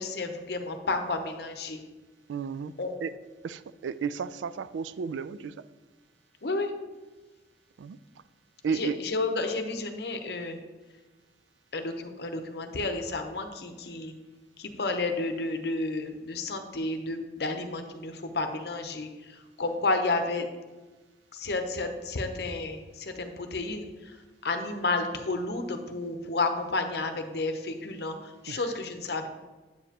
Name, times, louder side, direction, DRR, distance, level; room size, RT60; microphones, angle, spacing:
voice 1, 0.0-1.8 2.8-2.9 6.4-6.7 8.7-10.6 11.7-14.1 14.6-20.5 21.3-24.2 24.4-29.3, left 3 dB, 65° left, 6 dB, 0.7 m, -31 dB
voice 2, 2.3-2.7 3.0-3.1 3.4-5.7 7.8-8.0 8.6-9.0 28.5-28.7, right 6 dB, 85° right, 15 dB, 0.3 m, -33 dB
7.8 x 7.1 x 2.9 m, 1.2 s
head